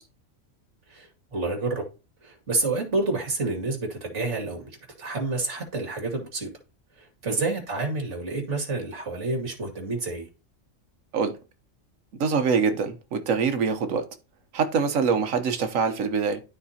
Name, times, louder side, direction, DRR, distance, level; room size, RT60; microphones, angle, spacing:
voice 1, 0.9-1.8 2.2-4.6 5.0-6.5 7.0-10.3, right 3 dB, 60° right, 2.5 m, -29 dB
voice 2, 12.2-14.0 14.5-16.4, right 5 dB, 90° right, 1.3 m, -24 dB
12.5 x 4.1 x 2.8 m
omnidirectional pair, 1.4 m